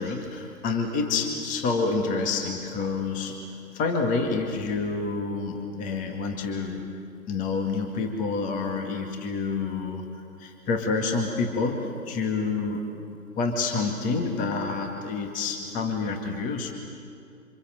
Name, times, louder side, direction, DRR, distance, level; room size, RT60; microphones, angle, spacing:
voice 1, 0.0-3.4 3.7-6.9 7.3-10.1 10.4-12.8 13.4-16.7, left 4 dB, 15° left, 3 dB, 2.1 m, -28 dB
28.5 x 26.5 x 7.7 m, 2.5 s
figure-of-eight pair, 140°, 49 cm